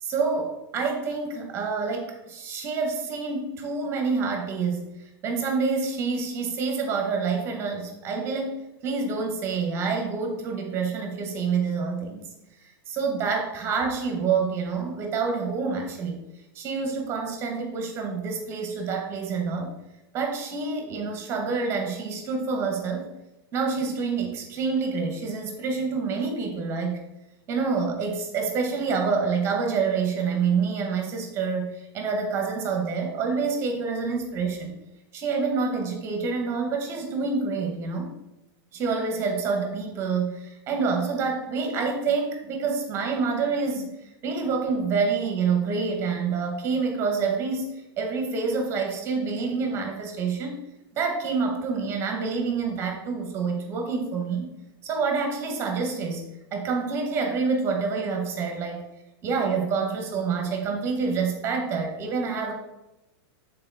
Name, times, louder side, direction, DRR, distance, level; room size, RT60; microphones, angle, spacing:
voice 1, 0.0-12.2 12.9-16.2 16.5-19.7 20.1-23.1 23.5-27.0 27.5-34.8 35.1-38.1 38.7-43.9 44.2-50.6 50.9-54.5 54.8-58.8 59.2-62.5, right 5 dB, 20° right, 3 dB, 0.9 m, -27 dB
8.3 x 3.9 x 3.4 m, 0.93 s
supercardioid pair, 170°, 13 cm